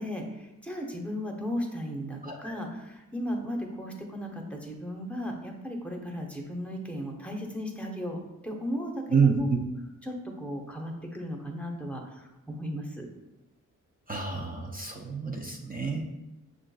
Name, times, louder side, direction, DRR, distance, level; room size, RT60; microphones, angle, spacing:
voice 1, 0.0-8.2 8.4-9.5 10.0-13.1, equal, 5° left, 1 dB, 0.7 m, -35 dB
voice 2, 2.2-2.6 9.1-9.6 14.1-16.0, right 5 dB, 25° right, 1 dB, 0.6 m, -28 dB
6.3 x 2.5 x 2.3 m, 0.94 s
cardioid pair, 70°, 34 cm